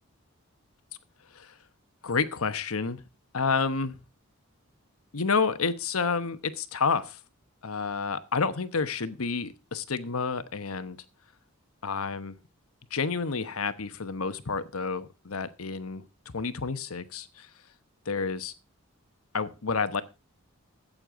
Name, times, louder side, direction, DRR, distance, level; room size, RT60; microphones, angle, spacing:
voice 1, 2.0-3.0 3.3-4.0 5.1-7.2 7.6-11.0 11.8-12.3 12.9-16.0 16.3-17.5 18.1-18.5 19.3-20.0, left 5 dB, 85° left, 12 dB, 1.0 m, -29 dB
14.5 x 8.8 x 3.7 m, 0.30 s
head